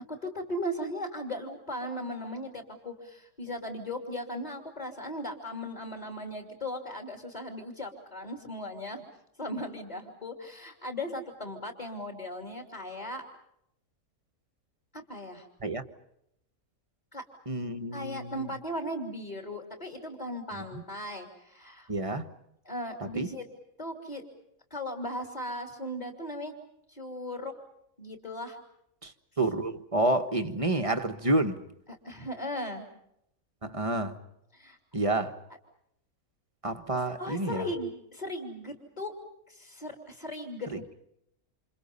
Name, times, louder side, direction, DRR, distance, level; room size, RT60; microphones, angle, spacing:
voice 1, 0.1-9.0 9.4-13.2 14.9-15.5 17.1-17.2 17.9-21.9 22.6-23.4 23.8-24.2 24.7-26.5 26.9-27.5 28.0-28.6 31.9-32.8 34.5-34.8 37.2-39.1 39.5-40.9, left 1 dB, 30° left, 3.2 m, -37 dB
voice 2, 17.5-18.5 20.5-20.8 21.9-22.3 23.0-23.3 29.0-29.1 29.4-31.6 33.6-34.2 34.9-35.3 36.6-37.6 40.7-40.8, right 2 dB, 25° right, 1.4 m, -29 dB
29.5 x 28.0 x 5.5 m
omnidirectional pair, 1.5 m